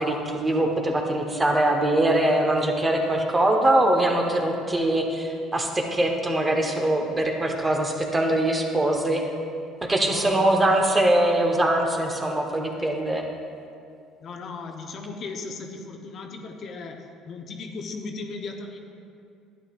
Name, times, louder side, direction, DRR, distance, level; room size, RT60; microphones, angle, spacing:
voice 1, 0.0-9.2 9.8-13.2, right 1 dB, 25° right, 2 dB, 1.3 m, -22 dB
voice 2, 10.0-10.8 14.2-18.8, left 4 dB, 55° left, 3 dB, 0.9 m, -37 dB
12.0 x 9.4 x 2.5 m, 2.4 s
hypercardioid pair, 65°, 0 cm